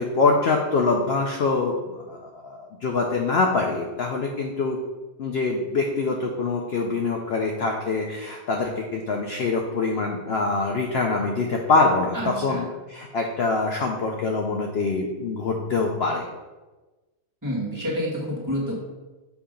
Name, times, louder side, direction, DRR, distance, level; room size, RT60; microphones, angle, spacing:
voice 1, 0.0-4.8 5.2-16.3, left 3 dB, 60° left, 1 dB, 0.7 m, -24 dB
voice 2, 12.1-12.6 17.4-18.8, equal, 15° right, -7 dB, 1.4 m, -28 dB
7.0 x 2.8 x 5.1 m, 1.2 s
omnidirectional pair, 1.6 m